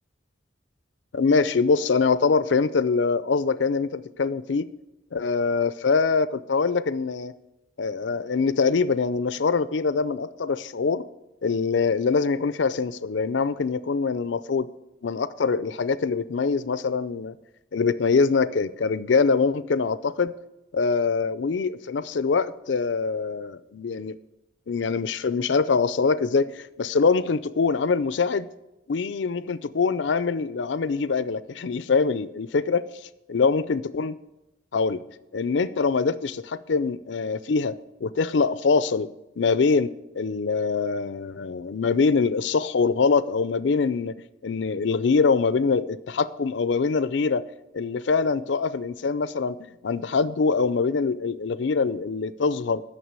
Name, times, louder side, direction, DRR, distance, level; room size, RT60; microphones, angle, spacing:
voice 1, 1.1-4.7 5.1-7.3 7.8-11.0 11.4-14.7 15.0-17.4 17.7-20.3 20.7-24.2 24.7-28.5 28.9-32.9 33.3-34.2 34.7-35.0 35.3-39.1 39.4-39.9 40.1-44.1 44.4-47.5 47.7-49.6 49.8-52.8, left 4 dB, 70° left, 0.5 m, -24 dB
9.4 x 6.6 x 8.2 m
head